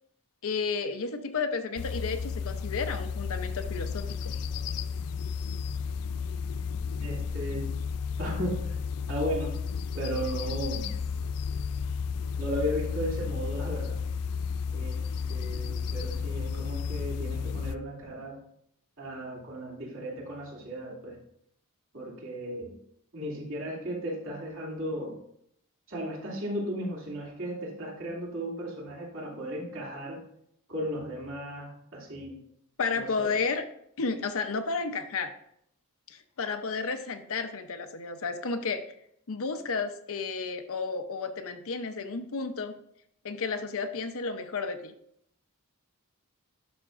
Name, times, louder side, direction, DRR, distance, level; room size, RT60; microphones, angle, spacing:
voice 1, 0.4-4.2 32.8-33.6 34.0-35.3 36.1-38.9 39.3-42.8 43.2-44.9, left 4 dB, 65° left, 8 dB, 0.7 m, -32 dB
sound 1, 1.8-17.8, left 5 dB, 85° left, 0.4 m, -33 dB
voice 2, 7.0-7.7 8.2-8.8 9.1-9.6 9.9-10.9 12.4-14.0 14.7-15.0 15.3-18.4 19.0-21.2 21.9-22.7 23.1-25.2 25.9-30.2 30.7-32.4 33.0-33.4, equal, 60° right, -4 dB, 2.7 m, -35 dB
11.0 x 5.7 x 2.5 m, 0.71 s
head